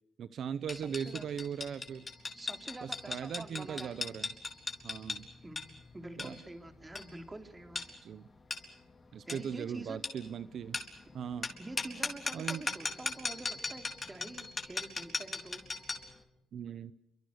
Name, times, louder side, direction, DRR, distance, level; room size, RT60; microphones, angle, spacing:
voice 1, 0.2-2.1 2.8-4.3 4.8-5.3 6.2-6.3 8.0-8.3 9.1-10.8 11.1-11.5 12.3-12.6 16.5-16.9, right 8 dB, 70° right, 14 dB, 0.9 m, -39 dB
sound 1, 0.7-16.1, left 3 dB, 30° left, 4.1 m, -39 dB
voice 2, 0.7-1.3 2.4-4.0 5.4-5.6 5.9-7.8 9.3-10.0 11.6-15.6, right 2 dB, 20° right, 6 dB, 3.5 m, -47 dB
28.5 x 24.5 x 6.6 m, 0.82 s
cardioid pair, 90°, 0 cm